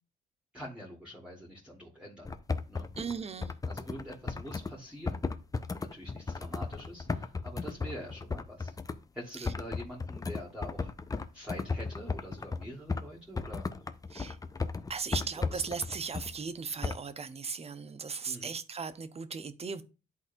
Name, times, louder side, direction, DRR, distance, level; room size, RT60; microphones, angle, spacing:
voice 1, 0.5-2.3 2.7-2.9 3.7-5.2 5.8-8.7 9.1-13.9 15.1-15.7 18.2-18.5, equal, 5° right, 1.8 m, -45 dB
sound 1, 2.2-4.7 5.0-9.0 9.4-13.1 13.4-16.3 16.8-17.0, left 4 dB, 20° left, 0.5 m, -35 dB
voice 2, 3.0-3.5 9.4-9.5 14.1-14.4 14.9-19.8, right 5 dB, 30° right, 0.7 m, -37 dB
11.0 x 4.1 x 2.6 m
cardioid pair, 90°, 20 cm